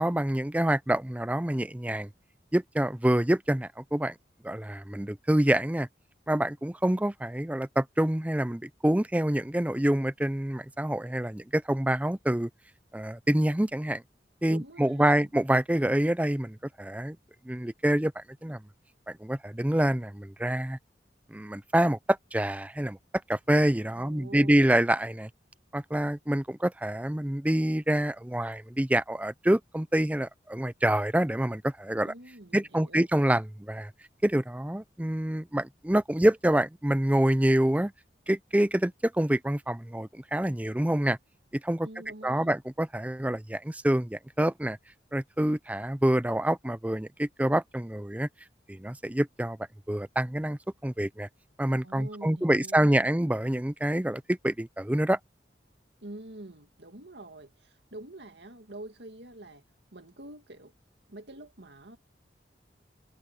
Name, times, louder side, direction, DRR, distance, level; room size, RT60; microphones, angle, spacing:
voice 1, 0.0-2.1 2.5-4.1 4.4-5.9 6.3-12.5 12.9-14.0 14.4-17.2 17.5-18.6 19.1-20.8 21.3-23.0 23.3-25.3 25.7-32.1 32.5-33.9 34.2-37.9 38.3-41.2 41.6-41.9 42.2-44.8 45.1-48.3 48.7-49.6 49.9-51.3 51.6-55.2, right 1 dB, 10° right, 0.5 m, -26 dB
voice 2, 14.5-15.3 23.9-24.6 32.0-33.1 41.8-42.5 51.8-53.1 56.0-59.6 59.9-60.7 61.1-62.0, right 1 dB, 75° right, 2.2 m, -46 dB
head